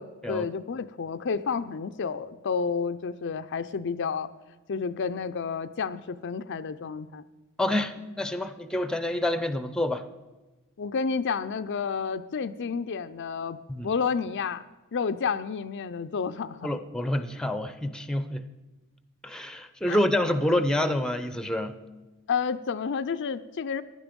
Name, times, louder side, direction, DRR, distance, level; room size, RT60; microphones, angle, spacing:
voice 1, 0.0-4.3 4.7-7.2 10.8-13.6 13.8-14.6 14.9-16.7 19.9-20.0 22.3-23.8, left 5 dB, 55° left, 10 dB, 0.5 m, -30 dB
voice 2, 7.6-10.0 13.7-13.9 16.6-18.4 19.2-21.8, left 1 dB, 5° left, 11 dB, 0.6 m, -27 dB
16.0 x 11.0 x 5.2 m, 1.2 s
head